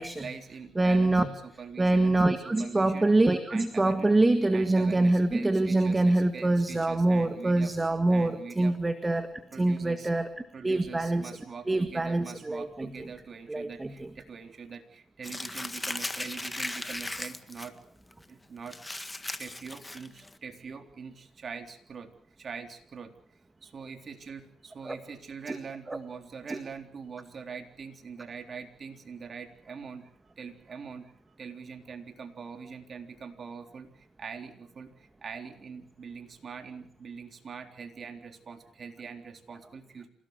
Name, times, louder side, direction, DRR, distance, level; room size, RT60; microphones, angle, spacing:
voice 1, 0.0-3.1 3.5-4.1 4.5-7.7 8.1-8.7 9.5-10.1 10.5-17.8 18.3-18.8 19.4-22.1 22.4-23.1 23.6-30.1 30.4-31.1 31.4-40.1, right 5 dB, 45° right, 5 dB, 3.7 m, -43 dB
voice 2, 0.8-1.2 1.8-9.3 9.6-10.3 10.6-11.3 11.7-12.7 13.5-14.1 24.8-25.0 25.5-25.6 25.9-26.0 26.5-26.6, right 2 dB, 20° right, 8 dB, 1.8 m, -25 dB
Crumpling crinkling, 15.2-17.7 18.1-18.2 18.7-20.3, left 2 dB, 15° left, 1.7 m, -37 dB
27.5 x 17.5 x 8.2 m, 0.67 s
cardioid pair, 90°, 0 cm